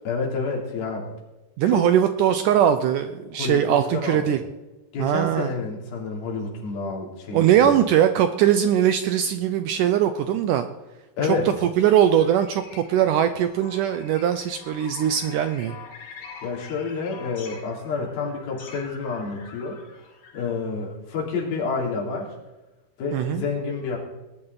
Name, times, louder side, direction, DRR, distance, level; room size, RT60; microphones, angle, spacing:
voice 1, 0.0-1.1 1.7-1.9 3.4-4.3 4.9-7.8 11.2-11.5 16.4-19.8 20.3-22.3 23.0-24.0, left 4 dB, 75° left, -2 dB, 5.0 m, -29 dB
voice 2, 1.6-4.4 5.0-5.5 7.3-10.7 11.2-11.4 11.8-15.8 23.1-23.4, right 10 dB, 80° right, 9 dB, 1.9 m, -21 dB
sound 1, 11.9-20.6, left 5 dB, 90° left, 4.5 m, -45 dB
19.5 x 12.0 x 4.0 m, 1.1 s
omnidirectional pair, 4.3 m